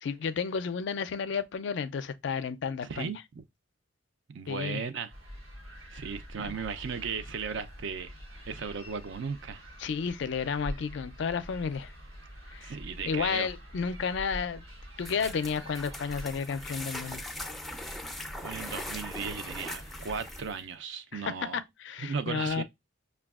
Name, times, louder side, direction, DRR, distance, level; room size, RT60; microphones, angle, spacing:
voice 1, 0.0-3.1 4.5-4.8 6.4-6.6 9.8-11.9 12.5-12.8 13.0-14.6 15.0-17.3 21.1-22.6, left 6 dB, 60° left, 0.4 m, -32 dB
voice 2, 2.8-3.4 4.3-5.1 5.9-8.1 8.5-9.6 12.6-13.5 18.4-21.6 22.0-22.6, right 6 dB, 65° right, 0.4 m, -36 dB
sound 1, 5.1-20.5, equal, 90° right, 1.1 m, -46 dB
sound 2, 15.0-20.6, left 1 dB, ahead, 0.4 m, -40 dB
5.9 x 2.2 x 2.3 m
head